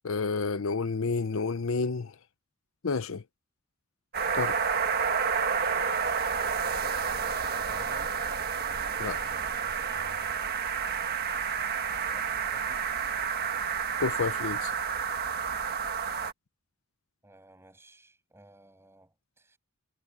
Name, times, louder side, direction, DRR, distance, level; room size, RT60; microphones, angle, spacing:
voice 1, 0.0-2.1 2.8-3.2 4.3-4.6 9.0-9.2 14.0-14.7, left 4 dB, 70° left, 0.7 m, -30 dB
sound 1, 4.1-16.3, right 6 dB, 45° right, 1.6 m, -30 dB
voice 2, 7.1-8.2 11.6-12.9 17.2-19.6, right 1 dB, 10° right, 7.9 m, -54 dB
head